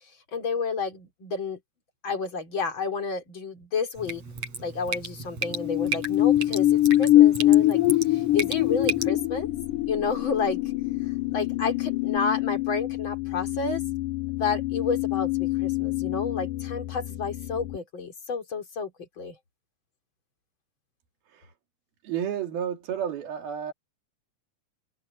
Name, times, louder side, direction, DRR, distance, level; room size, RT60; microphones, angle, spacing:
voice 1, 0.3-1.6 2.0-4.2 4.6-7.8 8.1-9.5 9.9-10.6 11.3-13.8 14.4-19.4, left 5 dB, 30° left, 4.4 m, -30 dB
Drip, 4.0-9.1, right 4 dB, 45° right, 5.8 m, -34 dB
sound 1, 5.4-11.8 12.2-12.3, left 14 dB, 55° left, 3.9 m, -22 dB
sound 2, 7.7-17.8, left 20 dB, 85° left, 1.7 m, -30 dB
voice 2, 22.0-23.7, right 9 dB, 75° right, 4.4 m, -31 dB
omnidirectional pair, 4.3 m